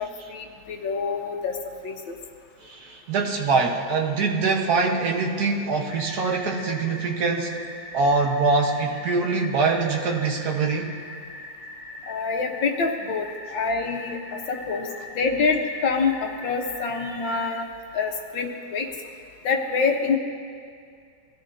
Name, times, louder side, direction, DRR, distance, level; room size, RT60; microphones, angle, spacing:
voice 1, 0.0-1.6 1.8-2.1 12.1-14.2 14.5-17.7 17.9-18.9 19.4-20.2, left 4 dB, 85° left, 2 dB, 1.9 m, -26 dB
voice 2, 2.6-7.6 7.9-10.9, right 4 dB, 60° right, 1 dB, 1.8 m, -23 dB
sound 1, 5.9-17.5, left 2 dB, 45° left, 4.8 m, -41 dB
23.0 x 14.5 x 2.8 m, 2.3 s
omnidirectional pair, 2.0 m